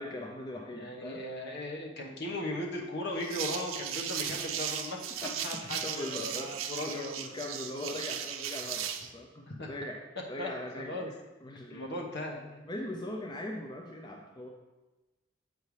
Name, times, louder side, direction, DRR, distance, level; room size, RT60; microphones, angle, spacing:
voice 1, 0.0-1.2 5.2-10.0 10.3-11.1 11.4-12.1 12.6-14.5, left 1 dB, 20° left, 1 dB, 0.5 m, -40 dB
voice 2, 0.7-5.0 5.4-7.2 9.5-9.7 10.4-10.5 10.8-11.1 11.7-12.6, left 1 dB, 60° left, -1 dB, 1.2 m, -37 dB
sound 1, 3.2-9.1, right 9 dB, 90° right, 0.5 m, -37 dB
7.6 x 5.3 x 3.2 m, 1.1 s
head